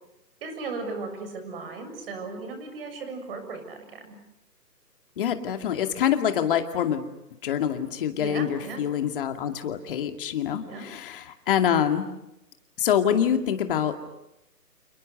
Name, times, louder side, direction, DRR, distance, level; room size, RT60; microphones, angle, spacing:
voice 1, 0.4-4.2 8.2-8.8 10.7-10.9, right 4 dB, 35° right, 7 dB, 7.1 m, -36 dB
voice 2, 5.2-7.1 7.4-12.1 12.8-14.1, left 9 dB, 35° left, 7 dB, 2.5 m, -25 dB
30.0 x 29.0 x 6.7 m, 0.88 s
hypercardioid pair, 150°, 49 cm